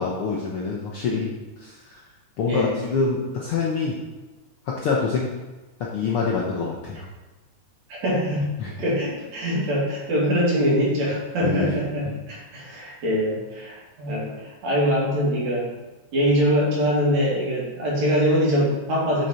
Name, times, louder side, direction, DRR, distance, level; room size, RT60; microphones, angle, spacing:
voice 1, 0.0-2.0 2.4-4.0 4.7-5.3 5.8-7.1 8.6-8.7 9.5-9.7 11.4-11.7, left 4 dB, 75° left, -2 dB, 1.3 m, -26 dB
voice 2, 2.5-2.8 7.9-15.7 16.1-19.3, equal, 60° right, -5 dB, 3.4 m, -23 dB
6.9 x 6.5 x 4.3 m, 1.2 s
omnidirectional pair, 3.6 m